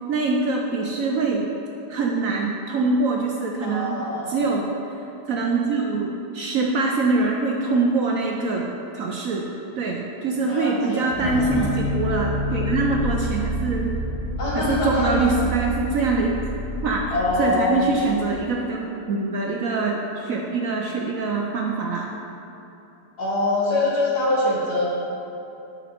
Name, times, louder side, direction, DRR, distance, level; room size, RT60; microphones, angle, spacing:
voice 1, 0.1-1.5 1.9-4.0 4.3-4.7 5.3-8.7 8.9-14.0 14.5-16.4 16.8-22.1, right 3 dB, 70° right, 0 dB, 0.8 m, -24 dB
voice 2, 3.6-4.3 10.5-11.7 14.4-15.2 17.1-17.8 23.2-24.9, left 2 dB, 60° left, -6 dB, 2.1 m, -24 dB
sound 1, 11.1-18.3, equal, 35° right, 1.6 m, -29 dB
8.0 x 6.4 x 4.3 m, 3.0 s
omnidirectional pair, 2.0 m